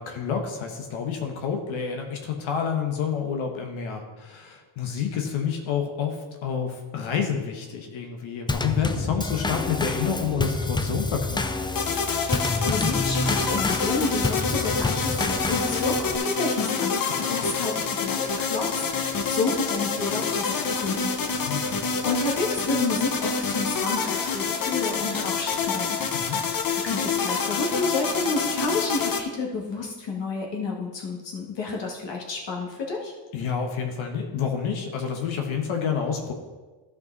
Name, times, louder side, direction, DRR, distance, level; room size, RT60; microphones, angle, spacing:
voice 1, 0.0-11.4 17.2-17.5 21.3-21.8 26.1-26.4 33.3-36.3, left 7 dB, 80° left, 3 dB, 1.3 m, -29 dB
Drum kit / Snare drum / Bass drum, 8.5-16.2, left 2 dB, 10° left, 0.4 m, -28 dB
sound 1, 11.7-29.2, left 5 dB, 45° left, 1.0 m, -27 dB
voice 2, 12.1-17.0 17.3-21.1 21.5-33.1, left 3 dB, 65° left, 0 dB, 2.1 m, -30 dB
12.5 x 5.3 x 4.0 m, 1.3 s
cardioid pair, 105°, 47 cm